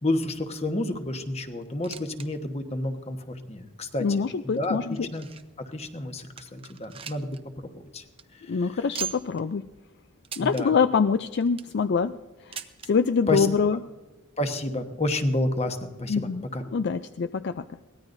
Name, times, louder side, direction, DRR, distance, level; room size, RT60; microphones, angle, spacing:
voice 1, 0.0-3.2 3.5-4.0 4.4-4.8 5.1-5.3 5.7-7.4 7.6-8.0 10.4-10.7 13.3-13.5 14.4-16.6, left 1 dB, 30° left, 7 dB, 1.2 m, -29 dB
sound 1, 1.7-2.3 2.6-2.7 3.3-3.4 4.2-5.6 6.0-6.1 6.4-7.4 7.7-7.8 8.1-8.2 8.9-9.4 10.2-10.7 11.3-11.8 12.5-12.9 13.9-14.0 14.2-14.3 15.1-15.2, right 7 dB, 25° right, 0.7 m, -39 dB
voice 2, 4.0-5.1 8.5-9.7 10.4-12.2 12.5-13.8 16.1-16.4 16.7-17.6, left 5 dB, 55° left, 11 dB, 0.4 m, -25 dB
23.0 x 18.0 x 2.6 m, 1.2 s
head